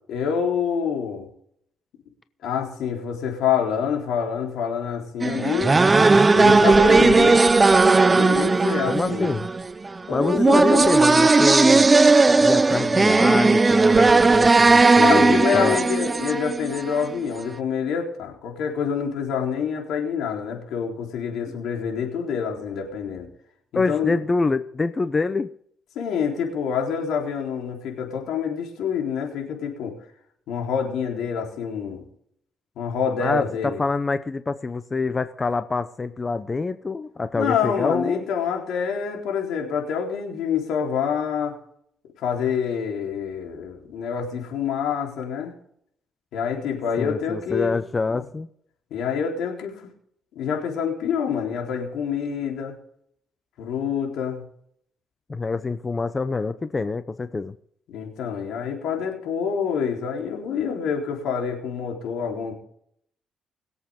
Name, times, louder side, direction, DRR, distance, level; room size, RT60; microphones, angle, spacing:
voice 1, 0.1-1.3 2.4-5.8 6.3-7.4 8.1-9.3 10.1-10.9 15.0-23.3 23.7-24.2 26.0-30.0 30.5-32.1 32.8-33.8 37.3-41.6 42.2-45.5 46.3-47.7 48.9-49.8 50.4-52.7 53.6-54.4 57.9-62.5, left 7 dB, 85° left, 0 dB, 3.8 m, -26 dB
sound 1, 5.2-17.1, right 3 dB, 25° right, 0.5 m, -17 dB
voice 2, 8.9-9.5 10.1-11.9 12.4-15.8 23.7-25.5 33.2-38.2 47.0-48.5 55.3-57.5, left 3 dB, 25° left, 12 dB, 0.7 m, -26 dB
22.0 x 8.2 x 3.7 m, 0.68 s
cardioid pair, 90°, 0 cm